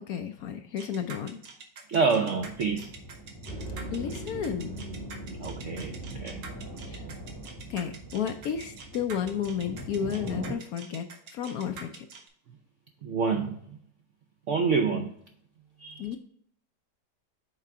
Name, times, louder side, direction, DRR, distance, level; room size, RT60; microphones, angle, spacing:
voice 1, 0.1-1.4 3.9-4.8 6.9-7.0 7.7-11.0 11.3-12.0 16.0-16.2, left 8 dB, 70° left, 7 dB, 0.9 m, -32 dB
sound 1, 0.8-12.3, right 4 dB, 85° right, 1.8 m, -45 dB
voice 2, 1.9-2.9 5.4-6.4 13.0-13.8 14.5-15.1 15.8-16.1, right 5 dB, 70° right, 4 dB, 0.7 m, -27 dB
sound 2, 2.4-10.6, right 1 dB, 15° left, 0.9 m, -43 dB
sound 3, 3.5-8.7, right 1 dB, 25° right, 1.1 m, -42 dB
6.6 x 4.6 x 3.6 m, 0.63 s
omnidirectional pair, 1.9 m